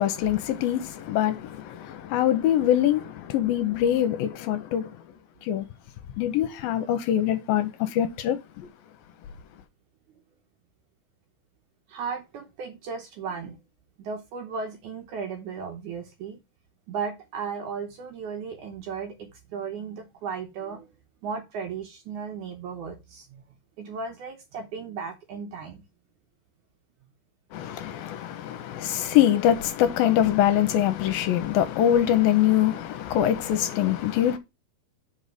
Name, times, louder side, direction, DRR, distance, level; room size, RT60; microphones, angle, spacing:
voice 1, 0.0-4.9 5.4-5.7 6.2-8.7 27.5-34.4, left 11 dB, 80° left, 2.3 m, -24 dB
voice 2, 11.9-13.6 14.0-16.4 16.9-20.9 21.2-23.4 23.8-25.8, right 5 dB, 70° right, 2.0 m, -35 dB
5.4 x 5.2 x 6.5 m
omnidirectional pair, 4.5 m